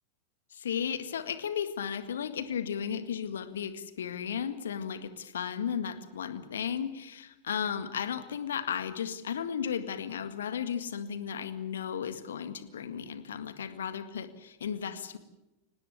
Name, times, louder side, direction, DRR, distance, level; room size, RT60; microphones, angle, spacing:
voice 1, 0.5-15.2, left 8 dB, 65° left, 11 dB, 1.9 m, -35 dB
25.0 x 19.0 x 8.3 m, 1.0 s
figure-of-eight pair, 90°, 0 cm